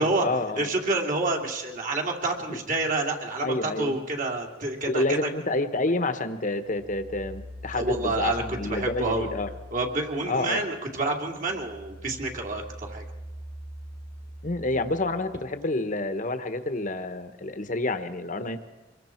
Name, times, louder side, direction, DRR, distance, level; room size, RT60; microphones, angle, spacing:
voice 1, 0.0-0.7 2.5-2.6 3.4-3.9 4.8-9.5 10.3-10.6 14.4-18.6, left 2 dB, 45° left, 9 dB, 1.3 m, -28 dB
voice 2, 0.6-5.3 7.7-9.3 9.7-13.0, right 2 dB, 45° right, 2 dB, 2.7 m, -28 dB
sound 1, 6.7-10.6 11.0-15.6, equal, 65° right, 6.1 m, -42 dB
26.0 x 22.5 x 4.6 m, 1.2 s
head